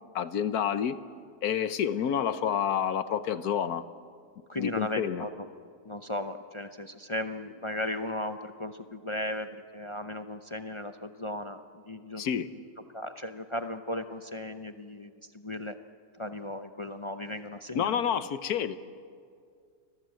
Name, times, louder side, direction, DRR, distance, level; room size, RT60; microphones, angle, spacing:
voice 1, 0.1-1.0 1.4-3.8 4.6-5.2 12.2-12.5 17.7-18.8, left 8 dB, 70° left, 13 dB, 1.4 m, -29 dB
voice 2, 4.5-5.5 5.8-12.2 12.9-15.8 16.1-18.0, left 1 dB, 35° left, 8 dB, 0.4 m, -36 dB
29.5 x 21.5 x 7.7 m, 2.2 s
omnidirectional pair, 1.7 m